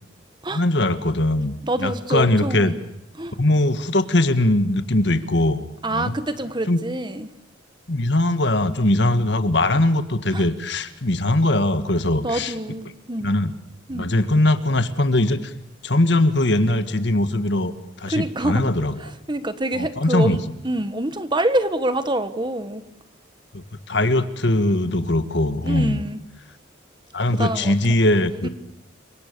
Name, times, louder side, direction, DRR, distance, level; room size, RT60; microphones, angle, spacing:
voice 1, 0.5-2.7 3.4-5.6 5.9-6.2 6.7-6.8 7.9-12.5 13.2-13.5 13.9-15.5 15.8-17.7 18.0-19.0 19.7-20.4 23.5-26.0 27.1-28.5, left 1 dB, 60° left, 10 dB, 1.7 m, -21 dB
voice 2, 1.6-2.8 3.2-3.3 5.8-7.3 10.3-10.5 12.2-13.3 13.9-14.1 18.1-18.6 19.0-22.8 25.6-26.2 27.3-28.0 28.4-28.5, right 1 dB, 25° right, 11 dB, 1.4 m, -26 dB
30.0 x 25.0 x 6.9 m, 0.81 s
head